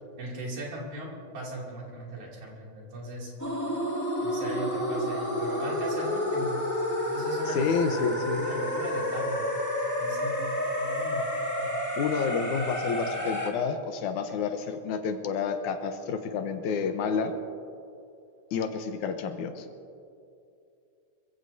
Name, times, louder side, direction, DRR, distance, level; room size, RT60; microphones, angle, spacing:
voice 1, 0.2-3.3 4.2-6.6 7.1-9.5 10.0-11.3 11.6-11.8, right 1 dB, 70° right, -4 dB, 4.2 m, -38 dB
sound 1, 3.4-13.5, left 1 dB, 10° left, 1.2 m, -30 dB
voice 2, 7.5-8.4 12.0-17.3 18.5-19.7, left 5 dB, 80° left, 6 dB, 2.4 m, -29 dB
26.0 x 16.0 x 2.7 m, 2.6 s
omnidirectional pair, 3.4 m